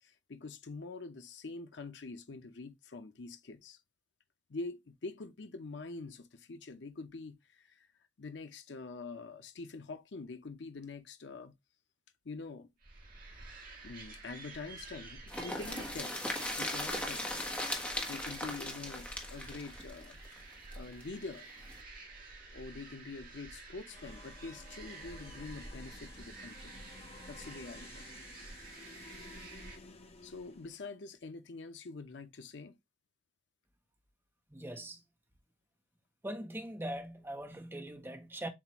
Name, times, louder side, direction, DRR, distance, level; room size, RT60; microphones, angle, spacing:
voice 1, 0.0-3.8 4.5-7.9 8.2-11.5 12.2-12.7 13.8-16.2 16.6-17.3 18.0-20.2 20.8-21.5 22.5-26.8 27.3-28.0 30.2-32.8, left 3 dB, 75° left, 0.7 m, -45 dB
sound 1, 12.8-29.8, right 3 dB, 50° right, 1.8 m, -50 dB
sound 2, 15.3-21.0 21.3-21.4 21.7-21.8, left 1 dB, 10° left, 1.1 m, -38 dB
sound 3, 23.9-30.8, left 3 dB, 35° left, 0.8 m, -54 dB
voice 2, 34.5-35.0 36.2-38.5, right 1 dB, 10° right, 0.8 m, -41 dB
7.2 x 2.5 x 3.0 m
head